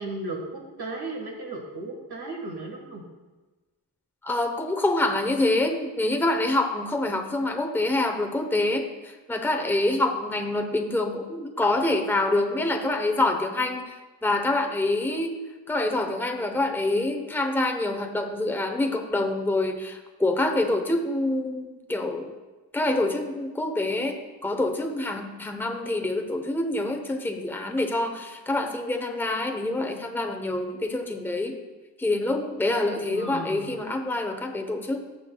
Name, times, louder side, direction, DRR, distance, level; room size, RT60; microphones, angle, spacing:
voice 1, 0.0-3.1 33.1-33.7, right 2 dB, 65° right, 0 dB, 1.5 m, -35 dB
voice 2, 4.2-13.9 14.2-15.3 15.7-22.3 22.7-31.6 32.0-35.0, left 2 dB, 5° left, 4 dB, 0.8 m, -26 dB
18.0 x 6.0 x 2.3 m, 1.2 s
wide cardioid pair, 75°, 42 cm